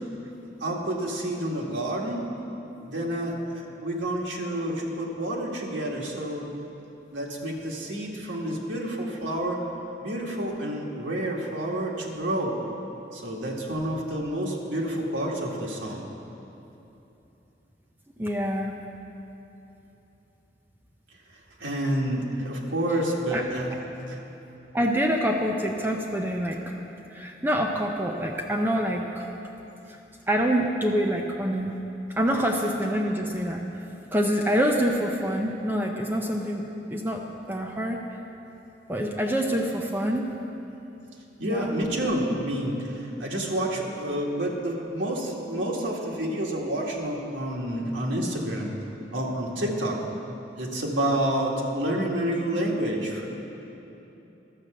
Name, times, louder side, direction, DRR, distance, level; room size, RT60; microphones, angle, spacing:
voice 1, 0.6-2.3 2.8-6.5 7.1-9.6 10.0-12.5 13.1-16.0 21.6-23.7 24.1-24.2 41.4-48.7 49.1-50.0 50.6-53.3, right 1 dB, 85° right, -1 dB, 1.6 m, -29 dB
voice 2, 18.2-18.7 23.3-23.4 24.7-26.7 27.1-29.2 30.3-31.7 32.2-33.6 34.1-36.6 36.9-37.2 37.5-38.0 38.9-40.2 41.4-41.7, equal, 10° right, 1 dB, 0.5 m, -26 dB
12.0 x 6.6 x 7.6 m, 3.0 s
head